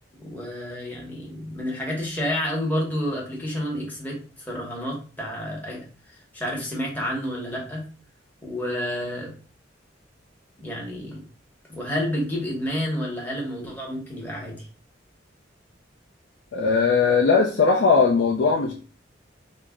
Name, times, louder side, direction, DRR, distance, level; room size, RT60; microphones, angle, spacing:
voice 1, 0.2-5.8 6.1-7.9 8.4-9.3 10.6-11.2 11.7-14.7, equal, 10° left, -3 dB, 1.0 m, -30 dB
voice 2, 16.5-18.7, left 5 dB, 70° left, -1 dB, 0.5 m, -19 dB
3.3 x 2.1 x 3.5 m, 0.38 s
head